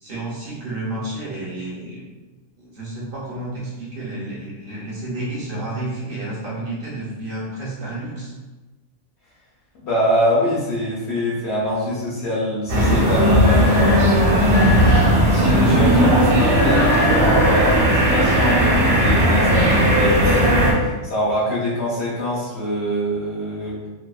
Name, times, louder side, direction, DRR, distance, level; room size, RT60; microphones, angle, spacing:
voice 1, 0.0-2.0 2.6-8.3, right 2 dB, 50° right, -6 dB, 0.7 m, -31 dB
voice 2, 9.7-14.6 15.3-23.8, equal, 60° left, -6 dB, 0.8 m, -24 dB
sound 1, 12.7-20.7, equal, 70° right, 1.0 m, -16 dB
2.7 x 2.2 x 2.3 m, 1.1 s
omnidirectional pair, 1.4 m